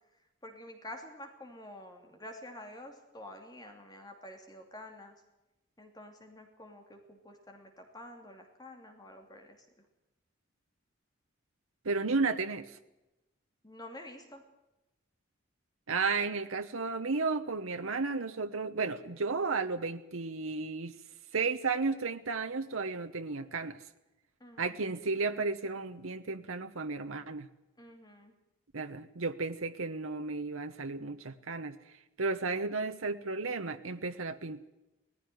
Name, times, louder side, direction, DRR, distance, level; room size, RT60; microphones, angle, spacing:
voice 1, 0.4-5.1 5.8-9.6 13.6-14.4 24.4-24.8 27.8-28.3, left 1 dB, 20° left, 4 dB, 2.7 m, -49 dB
voice 2, 11.8-12.8 15.9-20.9 21.3-23.8 24.6-27.5 28.7-31.7 32.2-34.7, right 4 dB, 85° right, 7 dB, 1.1 m, -33 dB
18.5 x 15.5 x 9.3 m, 0.97 s
head